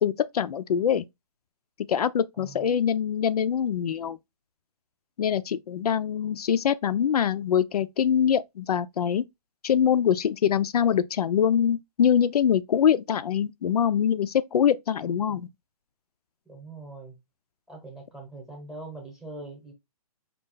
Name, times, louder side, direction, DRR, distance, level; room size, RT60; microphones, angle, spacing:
voice 1, 0.0-1.0 1.9-4.2 5.2-9.2 9.6-15.5, left 8 dB, 80° left, 0.5 m, -24 dB
voice 2, 2.3-2.7 6.2-6.4 15.0-15.4 16.5-17.2 17.7-19.7, right 2 dB, ahead, 0.9 m, -43 dB
5.3 x 2.4 x 3.8 m
hypercardioid pair, 170°, 20 cm